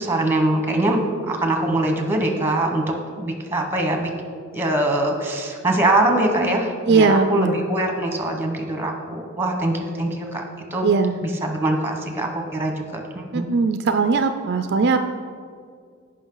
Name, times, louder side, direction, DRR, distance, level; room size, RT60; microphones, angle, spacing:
voice 1, 0.0-4.1 4.5-10.4 10.7-10.9 11.2-13.5, right 1 dB, 10° right, 3 dB, 1.2 m, -23 dB
voice 2, 6.9-7.6 10.8-11.2 13.3-15.1, right 4 dB, 55° right, 8 dB, 0.4 m, -19 dB
16.0 x 5.6 x 3.9 m, 2.1 s
head